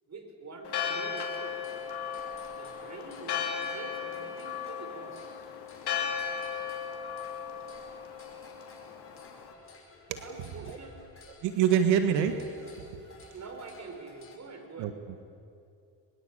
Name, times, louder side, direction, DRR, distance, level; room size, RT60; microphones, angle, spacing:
voice 1, 0.1-1.6 2.5-5.3 10.2-11.0 13.3-14.9, right 3 dB, 40° right, 6 dB, 5.1 m, -45 dB
Church bell, 0.6-9.5, left 7 dB, 70° left, 2.9 m, -36 dB
sound 1, 0.9-14.4, left 2 dB, 30° left, 6.0 m, -55 dB
voice 2, 11.4-13.0 14.8-14.9, right 8 dB, 85° right, 8 dB, 1.7 m, -26 dB
23.0 x 22.0 x 8.7 m, 2.5 s
supercardioid pair, 70°, 42 cm